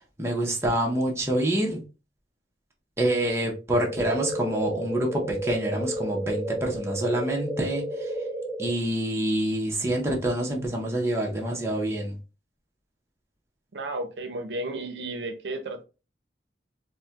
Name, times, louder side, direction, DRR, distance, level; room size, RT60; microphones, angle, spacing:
voice 1, 0.2-1.8 3.0-8.1 8.6-12.2, right 1 dB, 15° right, 0.7 m, -27 dB
sound 1, 3.7-8.7, right 1 dB, 10° left, 1.0 m, -32 dB
voice 2, 13.7-15.8, right 2 dB, 80° right, 0.6 m, -33 dB
4.2 x 2.1 x 2.3 m
head